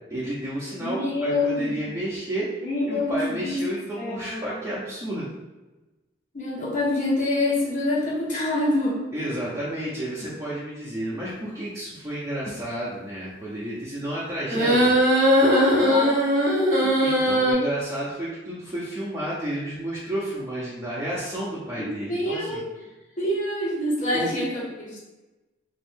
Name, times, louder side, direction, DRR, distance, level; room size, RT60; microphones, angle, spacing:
voice 1, 0.1-2.5 2.9-5.3 9.1-14.9 16.8-22.6 24.1-24.3, right 1 dB, 15° right, -9 dB, 0.7 m, -31 dB
voice 2, 0.8-1.9 2.6-3.6 4.0-4.4 6.3-9.0 15.5-16.2 21.8-22.6 23.2-25.0, left 1 dB, 40° left, -5 dB, 1.1 m, -26 dB
sound 1, 14.5-17.5, equal, 40° right, 1.0 m, -19 dB
3.8 x 2.6 x 3.5 m, 1.1 s
head